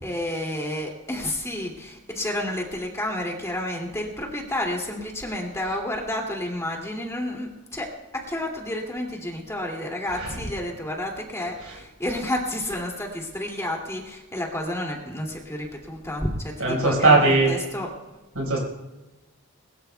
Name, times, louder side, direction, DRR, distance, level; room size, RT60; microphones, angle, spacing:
voice 1, 0.0-17.9, left 1 dB, 15° left, 0 dB, 2.5 m, -30 dB
voice 2, 16.6-17.5 18.3-18.6, right 3 dB, 80° right, -3 dB, 5.0 m, -19 dB
22.0 x 21.0 x 2.3 m, 1.1 s
head